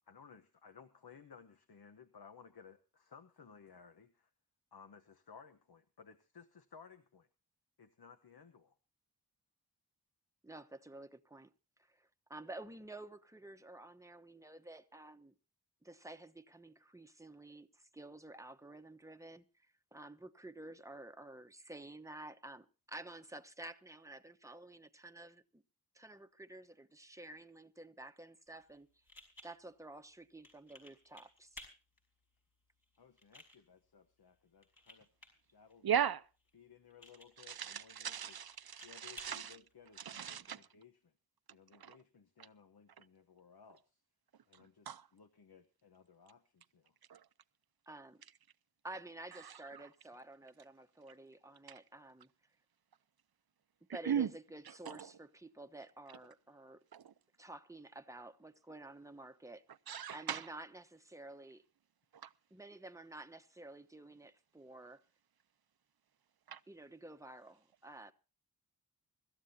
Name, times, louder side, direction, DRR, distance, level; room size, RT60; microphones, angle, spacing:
voice 1, 0.1-4.3 4.7-7.3 7.8-8.7 33.0-35.1 35.5-36.0 36.5-38.4 38.8-41.1 41.5-44.0 44.5-46.9, left 6 dB, 75° left, 1.1 m, -59 dB
voice 2, 10.4-11.5 11.8-15.3 15.8-19.4 19.9-25.6 25.9-28.9 29.4-31.6 47.9-48.2 48.8-52.3 53.9-56.8 57.4-59.6 60.1-61.6 62.5-65.0 66.7-68.1, right 2 dB, 10° right, 1.0 m, -51 dB
sound 1, 28.5-40.5, left 1 dB, 60° left, 5.4 m, -60 dB
voice 3, 35.8-36.2 37.5-39.6 40.0-40.6 41.8-42.0 44.9-45.0 47.1-47.2 54.1-54.3 54.9-55.0 56.9-57.1 59.9-60.4 66.5-66.6, right 8 dB, 70° right, 0.7 m, -37 dB
24.5 x 13.5 x 2.8 m
wide cardioid pair, 85°, 38 cm